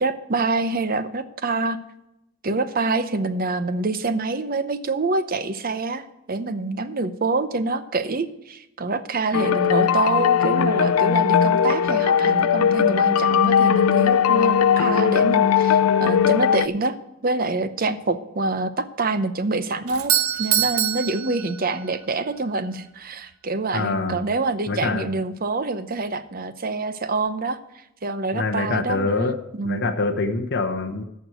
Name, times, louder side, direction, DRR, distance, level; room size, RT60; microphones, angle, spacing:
voice 1, 0.0-1.8 2.4-16.9 17.2-20.1 20.4-27.6 28.0-29.8, right 3 dB, 45° right, 12 dB, 0.8 m, -26 dB
Trap rap hiphop vibe loop, 9.3-16.7, left 7 dB, 85° left, 0.4 m, -19 dB
Doorbell, 19.9-22.0, right 11 dB, 90° right, 0.8 m, -24 dB
voice 2, 23.7-24.2 24.7-25.1 28.3-29.4 29.6-31.0, left 3 dB, 50° left, 4 dB, 0.9 m, -25 dB
14.0 x 4.7 x 7.9 m, 0.87 s
head